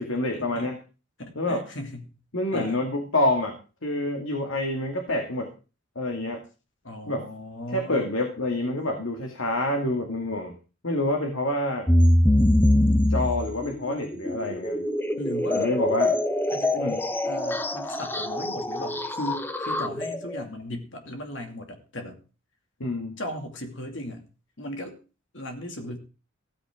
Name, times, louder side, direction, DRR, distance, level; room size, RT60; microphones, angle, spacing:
voice 1, 0.1-0.8 1.4-1.6 2.3-3.6 3.8-5.5 6.0-6.4 7.1-7.3 7.7-10.5 10.8-11.9 13.1-14.8 15.5-16.1 16.8-17.0 22.8-23.2, left 1 dB, 90° left, 3 dB, 2.3 m, -27 dB
voice 2, 1.2-2.1 2.5-2.8 6.8-8.1 15.2-15.7 16.5-16.9 17.2-22.2 23.2-24.3 24.6-25.0 25.3-26.0, left 1 dB, 65° left, 4 dB, 2.6 m, -37 dB
sound 1, 11.9-20.4, left 1 dB, 10° left, 0.8 m, -24 dB
15.5 x 14.0 x 3.8 m, 0.34 s
head